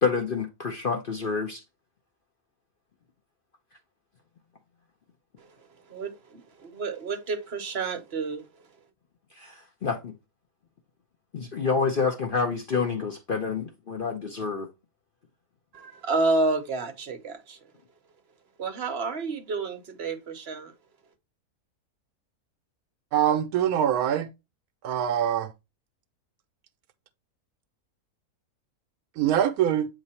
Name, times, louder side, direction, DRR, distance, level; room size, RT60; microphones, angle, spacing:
voice 1, 0.0-1.6 9.4-10.1 11.3-14.7, left 5 dB, 45° left, 0.8 m, -28 dB
voice 2, 5.9-8.5 15.7-17.6 18.6-20.7, right 3 dB, 45° right, 1.1 m, -30 dB
voice 3, 23.1-24.3 24.8-25.5 29.2-29.9, right 10 dB, 80° right, 1.1 m, -23 dB
7.6 x 3.0 x 4.2 m
omnidirectional pair, 1.6 m